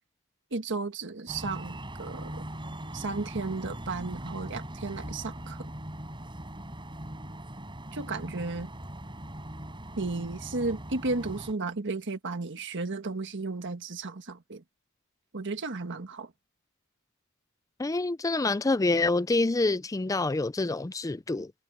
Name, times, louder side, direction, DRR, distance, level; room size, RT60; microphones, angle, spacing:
voice 1, 0.5-2.5 2.9-5.7 7.9-8.7 10.0-14.6 15.3-16.3, right 3 dB, 55° right, 1.5 m, -34 dB
sound 1, 1.3-11.5, right 1 dB, 20° right, 6.0 m, -40 dB
voice 2, 17.8-21.5, left 2 dB, 15° left, 0.4 m, -27 dB
head